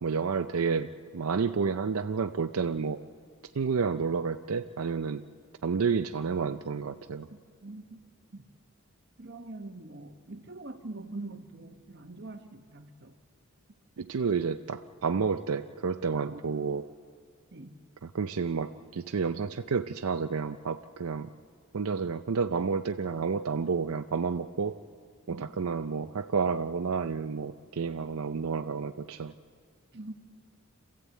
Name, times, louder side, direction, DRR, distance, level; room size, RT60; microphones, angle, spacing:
voice 1, 0.0-3.0 3.5-5.2 5.6-7.3 14.0-16.9 18.0-21.3 21.7-24.7 25.3-29.3, right 5 dB, 85° right, 8 dB, 0.5 m, -30 dB
voice 2, 7.6-8.0 8.3-8.4 9.2-13.1 16.3-16.4 17.5-17.7 25.3-25.5 29.9-30.2, right 2 dB, 50° right, 6 dB, 1.3 m, -43 dB
27.0 x 15.0 x 8.3 m, 2.3 s
head